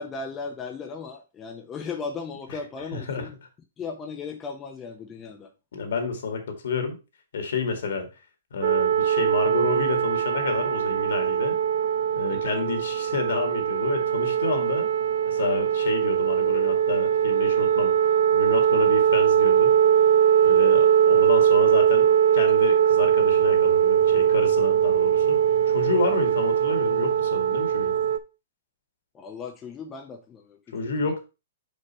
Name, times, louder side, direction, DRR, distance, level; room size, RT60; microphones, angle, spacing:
voice 1, 0.0-3.3 3.8-5.5 12.3-12.6 29.1-31.1, left 5 dB, 15° left, 2 dB, 0.6 m, -37 dB
voice 2, 5.7-7.0 7.3-8.1 8.5-11.6 12.1-14.9 15.3-17.9 18.3-19.7 20.4-22.1 22.3-25.4 25.7-27.9 30.7-31.2, left 4 dB, 65° left, 5 dB, 2.0 m, -29 dB
sound 1, 8.6-28.2, right 9 dB, 50° right, 0.5 m, -21 dB
5.4 x 4.9 x 4.3 m, 0.29 s
hypercardioid pair, 170°, 0 cm